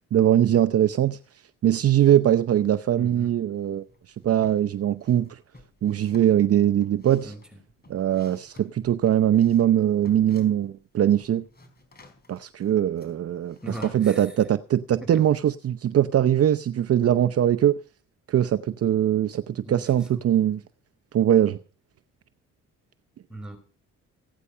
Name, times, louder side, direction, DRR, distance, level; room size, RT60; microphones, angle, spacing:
voice 1, 0.1-1.2 1.6-3.8 4.2-5.4 5.8-7.3 7.9-11.4 12.3-17.8 18.3-20.6 21.1-21.6, right 11 dB, 50° right, 0.7 m, -21 dB
voice 2, 3.0-3.3 7.2-7.4 13.6-14.3 15.0-15.2 19.6-20.2 23.3-23.6, right 2 dB, 5° right, 5.6 m, -39 dB
sound 1, 3.9-4.6 5.0-10.8 11.1-14.3, left 2 dB, 30° left, 4.4 m, -50 dB
16.5 x 9.6 x 5.6 m
cardioid pair, 90°, 30 cm